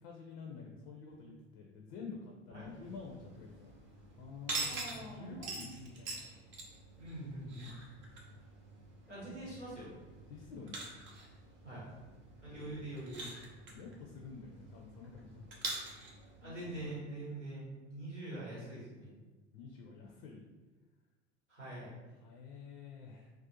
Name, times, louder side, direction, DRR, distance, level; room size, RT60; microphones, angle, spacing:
voice 1, 0.0-3.7 4.2-6.4 10.3-10.9 13.7-15.6 16.4-16.9 19.5-20.4 22.2-23.3, left 5 dB, 55° left, 0 dB, 0.4 m, -49 dB
sound 1, 2.6-17.0, right 2 dB, 35° right, 0.5 m, -46 dB
voice 2, 4.7-5.4 7.0-7.7 9.1-9.9 11.6-11.8 12.4-13.3 16.4-19.1 21.5-21.9, right 1 dB, 90° right, -10 dB, 1.1 m, -44 dB
2.4 x 2.1 x 2.7 m, 1.3 s
figure-of-eight pair, 70°, 35 cm